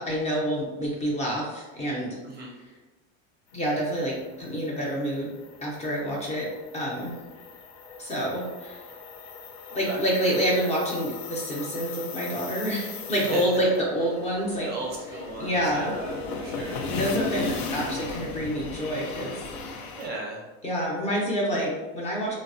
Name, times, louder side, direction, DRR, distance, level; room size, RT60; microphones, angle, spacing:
voice 1, 0.0-2.2 3.5-5.3 5.6-6.5 6.7-7.1 8.0-8.8 9.8-14.7 15.4-15.9 16.9-19.4 20.6-22.4, equal, 20° left, -4 dB, 0.5 m, -27 dB
sound 1, 3.6-20.1, left 4 dB, 85° left, 0.5 m, -37 dB
voice 2, 9.7-10.0 13.2-13.7 14.6-17.3 19.9-20.4, right 2 dB, 30° right, -1 dB, 0.5 m, -37 dB
3.2 x 2.0 x 2.5 m, 1.2 s
cardioid pair, 150°, 33 cm